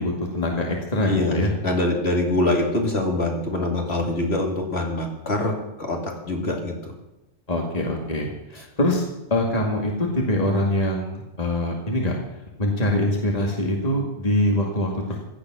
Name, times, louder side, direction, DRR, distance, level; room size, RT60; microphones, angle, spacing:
voice 1, 0.0-1.5 7.5-12.2 12.6-15.2, left 1 dB, 30° left, 0 dB, 2.3 m, -24 dB
voice 2, 1.1-6.7, left 2 dB, 50° left, 1 dB, 3.0 m, -24 dB
16.5 x 12.5 x 6.2 m, 0.96 s
omnidirectional pair, 1.4 m